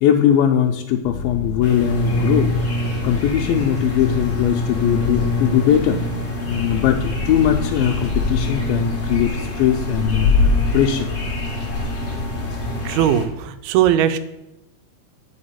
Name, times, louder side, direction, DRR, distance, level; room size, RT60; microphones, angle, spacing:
voice 1, 0.0-2.5 3.0-6.0 6.5-11.1, left 9 dB, 80° left, 2 dB, 2.3 m, -20 dB
sound 1, 1.0-8.0, left 5 dB, 70° right, 1.2 m, -30 dB
sound 2, 1.6-13.2, left 2 dB, 25° left, 1.5 m, -23 dB
voice 2, 12.9-14.2, right 10 dB, 90° right, 10 dB, 2.6 m, -18 dB
8.7 x 5.3 x 5.7 m, 0.93 s
omnidirectional pair, 4.3 m